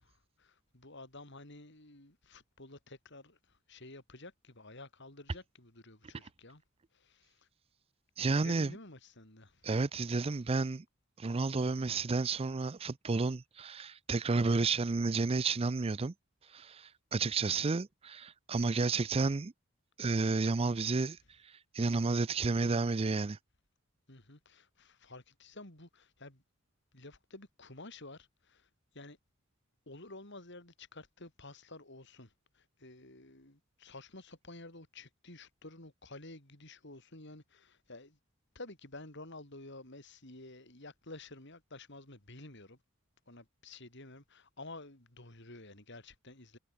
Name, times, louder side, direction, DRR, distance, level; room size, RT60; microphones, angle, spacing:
voice 1, 0.0-6.6 6.9-7.5 8.3-9.7 24.1-26.4 26.9-29.2 29.9-38.2 38.5-42.8 43.3-46.6, left 2 dB, 60° left, 5.5 m, -51 dB
voice 2, 8.2-8.7 9.6-10.8 11.2-16.1 16.5-19.5 20.0-21.2 21.4-23.4, right 3 dB, 30° right, 0.5 m, -31 dB
head